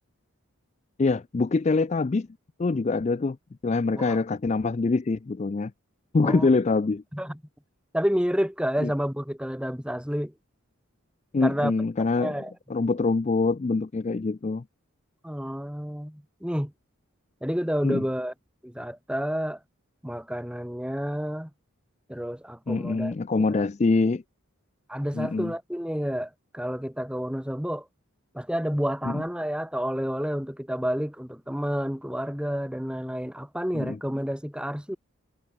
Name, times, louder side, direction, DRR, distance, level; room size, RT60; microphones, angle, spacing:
voice 1, 1.0-2.3 2.6-3.4 3.6-5.7 6.1-7.0 8.8-8.9 11.3-12.3 12.7-14.6 17.8-18.0 22.7-24.2 25.1-25.5 29.0-29.2 33.7-34.0, left 3 dB, 30° left, 0.3 m, -24 dB
voice 2, 7.9-10.3 11.4-11.7 12.2-12.5 15.2-16.7 17.4-18.3 18.6-19.6 20.0-21.5 22.1-23.7 24.9-27.9 28.3-35.0, equal, 5° right, 1.8 m, -30 dB
head